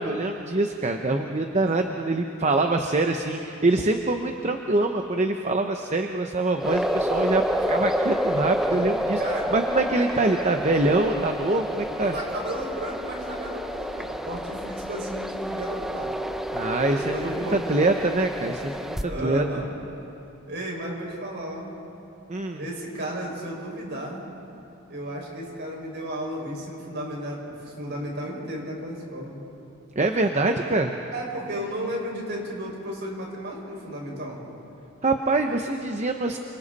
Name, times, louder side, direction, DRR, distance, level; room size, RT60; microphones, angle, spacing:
voice 1, 0.0-9.2 9.5-12.1 16.5-19.4 22.3-22.6 30.0-31.0 35.0-36.4, right 2 dB, 30° right, 4 dB, 0.8 m, -24 dB
sound 1, 6.6-19.0, equal, ahead, 0.7 m, -29 dB
voice 2, 9.2-9.5 12.0-16.2 16.8-17.6 18.9-19.7 20.5-21.7 22.6-24.2 24.9-29.4 31.1-34.4, right 1 dB, 50° right, -2 dB, 5.8 m, -34 dB
29.5 x 25.5 x 4.2 m, 2.9 s
head